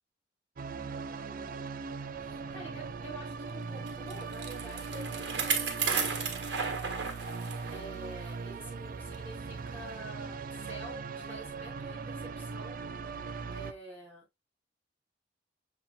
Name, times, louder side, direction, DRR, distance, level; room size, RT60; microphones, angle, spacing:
sound 1, 0.6-13.7, right 4 dB, 50° right, 0.5 m, -40 dB
voice 1, 1.1-6.0 7.2-12.9 13.5-14.2, right 2 dB, 10° left, 4.8 m, -48 dB
Bicycle, 3.9-7.8 8.2-8.3 9.1-9.2, right 5 dB, 70° right, 1.5 m, -34 dB
6.9 x 5.9 x 2.3 m
head